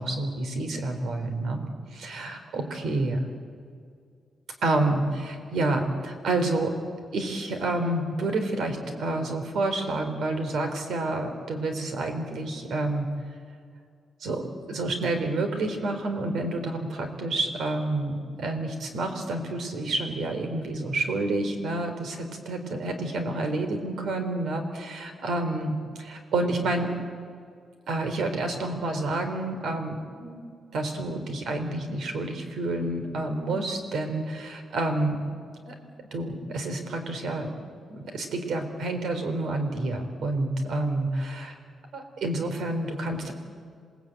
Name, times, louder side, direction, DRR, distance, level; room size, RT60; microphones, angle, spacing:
voice 1, 0.0-1.6 1.9-3.2 4.6-6.7 7.1-13.1 14.2-27.0 27.9-30.4 30.7-35.2 35.7-35.8 36.1-37.5 37.9-41.5 41.9-43.3, right 2 dB, 70° right, 6 dB, 3.8 m, -29 dB
27.0 x 19.0 x 9.1 m, 2.2 s
wide cardioid pair, 150°, 0 cm